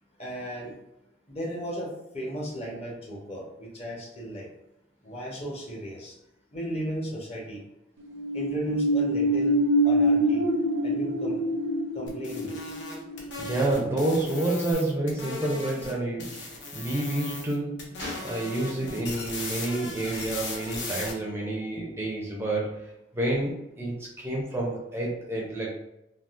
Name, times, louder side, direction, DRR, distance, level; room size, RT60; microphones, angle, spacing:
voice 1, 0.2-0.7 1.3-4.5 5.0-6.1 6.5-7.6 8.3-9.6 9.8-10.4 10.8-11.4 11.9-12.6, equal, 35° left, -2 dB, 0.8 m, -35 dB
sound 1, 8.0-14.3 14.7-14.8, right 1 dB, 90° right, 0.5 m, -26 dB
sound 2, 12.1-15.9 16.2-17.5 17.8-21.1, left 3 dB, 65° left, 0.7 m, -38 dB
voice 2, 13.4-25.7, right 2 dB, 15° right, -3 dB, 0.4 m, -29 dB
Gunshot gunfire, 16.3-16.4 18.0-19.0 19.8-20.1, left 1 dB, 90° left, 1.4 m, -40 dB
3.5 x 2.3 x 2.4 m, 0.86 s
head